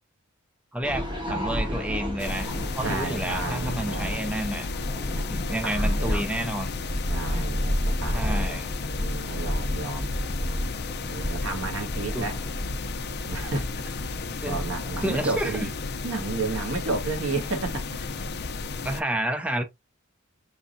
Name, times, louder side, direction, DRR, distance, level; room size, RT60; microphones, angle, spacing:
voice 1, 0.7-4.7 5.3-6.7 8.1-8.7 12.1-12.3 14.4-14.6 15.0-15.7 18.8-19.6, right 1 dB, 5° right, 0.5 m, -30 dB
sound 1, 0.8-18.8, equal, 25° right, 1.6 m, -32 dB
sound 2, 2.2-19.0, left 4 dB, 50° left, 0.5 m, -34 dB
voice 2, 2.8-4.6 5.2-6.2 7.1-8.5 8.8-10.1 11.1-12.4 13.2-15.7 16.0-18.1, right 3 dB, 75° right, 1.4 m, -32 dB
4.7 x 3.5 x 2.6 m
head